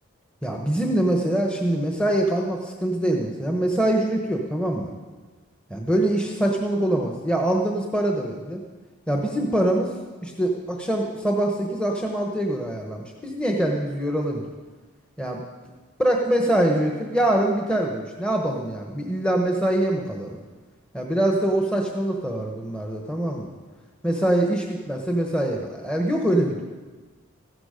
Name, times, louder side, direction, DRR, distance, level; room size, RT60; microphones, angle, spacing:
voice 1, 0.4-4.9 5.7-8.6 9.1-9.9 10.2-14.4 15.2-15.4 16.0-20.4 20.9-23.5 24.0-26.6, right 1 dB, 5° left, 1 dB, 1.0 m, -24 dB
15.0 x 12.0 x 5.1 m, 1.3 s
head